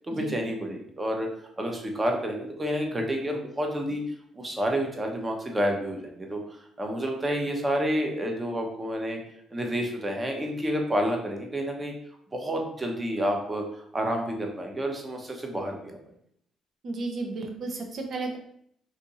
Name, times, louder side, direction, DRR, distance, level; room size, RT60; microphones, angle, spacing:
voice 1, 0.1-1.3 1.6-4.0 4.4-9.2 9.5-11.9 12.3-16.0, equal, 20° right, 2 dB, 0.8 m, -29 dB
voice 2, 16.8-18.4, right 3 dB, 60° right, 3 dB, 0.7 m, -33 dB
2.6 x 2.6 x 4.0 m, 0.68 s
cardioid pair, 80°, 0 cm